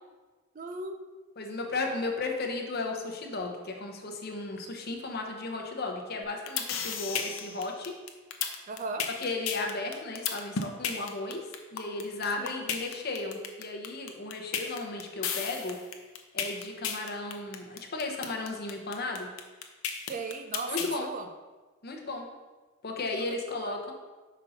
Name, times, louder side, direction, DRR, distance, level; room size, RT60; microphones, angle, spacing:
voice 1, 0.5-1.0 8.7-9.0 12.4-12.6 20.1-21.3 23.2-23.3 23.6-23.8, right 3 dB, 40° right, 6 dB, 0.4 m, -37 dB
voice 2, 1.4-8.0 9.2-15.8 16.3-19.3 20.7-21.1 21.8-22.3 22.8-23.9, left 3 dB, 50° left, 2 dB, 0.9 m, -35 dB
sound 1, 6.2-20.9, left 7 dB, 80° left, 0.7 m, -33 dB
5.3 x 4.1 x 5.6 m, 1.3 s
head